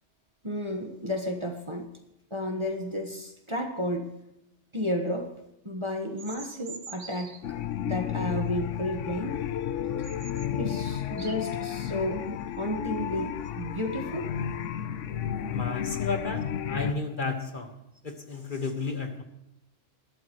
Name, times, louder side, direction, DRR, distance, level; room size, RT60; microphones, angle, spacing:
voice 1, 0.4-1.9 2.3-4.1 4.7-5.3 5.6-7.6 7.8-9.4 10.5-12.3 12.6-14.3, left 1 dB, 25° right, 3 dB, 1.3 m, -32 dB
sound 1, 6.2-7.5 9.6-9.7 10.0-10.5 11.0-11.7, right 5 dB, 40° right, 0.9 m, -45 dB
sound 2, 7.4-16.9, left 9 dB, 85° left, 1.0 m, -32 dB
voice 2, 15.5-16.4 16.7-17.7 18.0-19.2, left 4 dB, 45° left, 4 dB, 1.7 m, -32 dB
21.0 x 12.0 x 3.1 m, 0.86 s
omnidirectional pair, 1.3 m